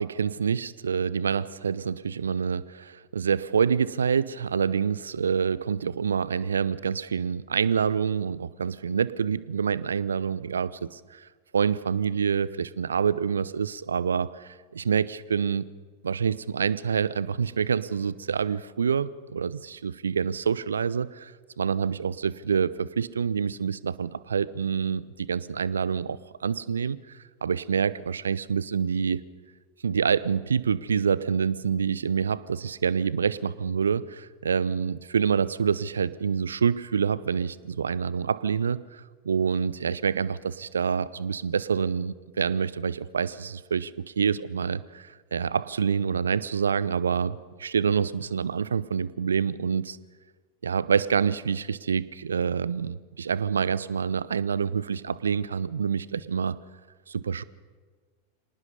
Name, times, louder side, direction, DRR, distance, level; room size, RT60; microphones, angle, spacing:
voice 1, 0.0-11.2 11.5-15.7 16.0-21.3 21.6-27.0 27.4-29.2 29.8-50.0 50.6-56.6 57.1-57.4, right 6 dB, 70° right, 20 dB, 0.6 m, -27 dB
25.5 x 19.0 x 5.4 m, 1.5 s
figure-of-eight pair, 90°, 0 cm